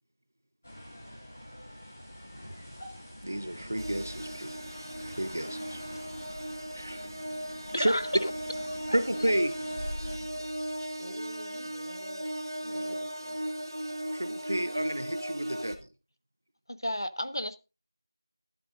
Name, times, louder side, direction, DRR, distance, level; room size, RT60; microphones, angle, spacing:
sound 1, 0.6-10.2, equal, 25° left, 1.9 m, -45 dB
voice 1, 3.2-4.5 5.0-5.8 6.7-7.1 7.8-8.0 8.9-9.5 14.1-15.7, right 1 dB, 35° right, 12 dB, 0.6 m, -31 dB
sound 2, 3.8-15.8, right 1 dB, 80° right, 2.4 m, -37 dB
voice 2, 7.7-8.3 16.7-17.6, left 1 dB, 70° left, 13 dB, 0.9 m, -32 dB
voice 3, 11.0-12.2 12.6-13.4, equal, ahead, -12 dB, 0.8 m, -48 dB
13.5 x 11.5 x 2.5 m, 0.29 s
figure-of-eight pair, 180°, 2 cm